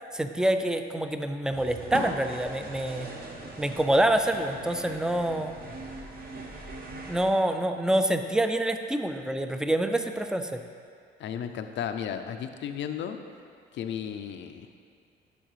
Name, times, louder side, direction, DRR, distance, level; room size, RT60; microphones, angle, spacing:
voice 1, 0.1-3.1 3.6-5.5 7.1-10.6, right 1 dB, 5° right, 7 dB, 0.3 m, -26 dB
sound 1, 1.5-7.3, right 2 dB, 50° right, 0.9 m, -40 dB
voice 2, 11.2-13.2 13.7-14.7, left 8 dB, 70° left, 7 dB, 0.5 m, -34 dB
10.0 x 3.9 x 3.2 m, 2.2 s
cardioid pair, 90°, 20 cm